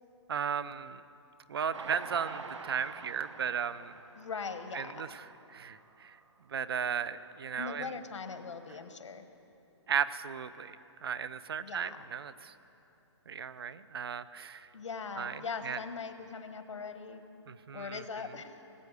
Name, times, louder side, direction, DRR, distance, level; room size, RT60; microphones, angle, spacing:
voice 1, 0.3-1.0 1.5-4.0 4.7-5.3 5.5-6.2 6.5-7.9 9.9-10.8 11.0-12.5 13.3-14.7 15.2-15.8 17.5-18.0, right 7 dB, 55° right, 16 dB, 0.5 m, -35 dB
Train, 1.7-5.2 5.7-5.8 6.1-6.2, right 5 dB, 75° right, 1.2 m, -46 dB
voice 2, 4.1-5.1 7.6-9.2 11.6-12.0 14.7-17.2 17.7-18.6, left 5 dB, 75° left, 8 dB, 1.3 m, -41 dB
18.5 x 8.3 x 8.2 m, 3.0 s
hypercardioid pair, 170°, 15 cm